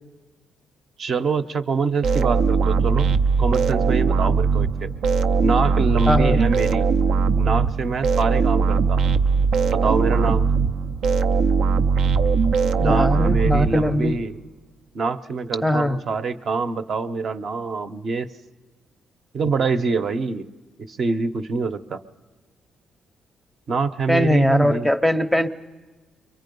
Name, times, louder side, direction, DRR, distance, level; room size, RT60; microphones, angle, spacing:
voice 1, 1.0-4.9 5.4-6.9 7.4-9.0 9.7-10.5 12.7-14.3 14.9-18.3 19.3-20.5 20.9-22.0 23.7-24.9, right 4 dB, 50° right, 10 dB, 0.8 m, -25 dB
sound 1, 2.0-14.3, right 5 dB, 80° right, 0.6 m, -20 dB
voice 2, 6.1-6.4 12.8-14.2 15.6-16.0 24.1-25.5, left 1 dB, ahead, 8 dB, 0.7 m, -20 dB
29.5 x 23.5 x 5.4 m, 1.3 s
cardioid pair, 140°, 0 cm